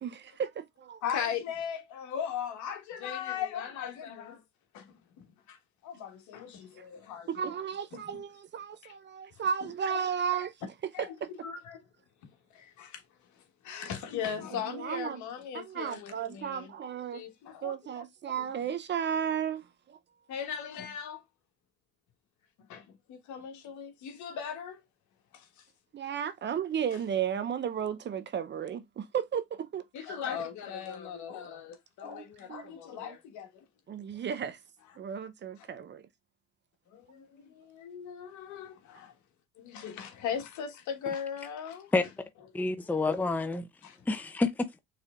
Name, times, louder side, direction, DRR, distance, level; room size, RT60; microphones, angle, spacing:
voice 1, 0.0-1.0 7.3-10.5 10.8-11.3 14.2-14.3 14.7-15.2 15.5-17.2 17.6-20.0 25.9-30.2 32.0-32.2 32.5-32.7 33.0-33.1 33.9-34.6 35.0-36.0, right 8 dB, 35° right, 0.6 m, -34 dB
voice 2, 1.0-4.4 4.7-4.8 5.8-7.6 7.9-8.2 9.6-10.1 10.9-11.1 11.4-11.8 12.8-12.9 13.6-16.7 17.1-18.4 20.3-21.2 22.7-22.8 23.1-24.8 29.9-33.5 37.1-37.2 37.7-39.1 39.6-41.9 43.8-43.9, left 8 dB, 65° left, 1.4 m, -38 dB
voice 3, 42.5-43.7 44.1-44.8, left 3 dB, 5° left, 0.6 m, -28 dB
6.4 x 3.3 x 2.4 m
supercardioid pair, 85°, 31 cm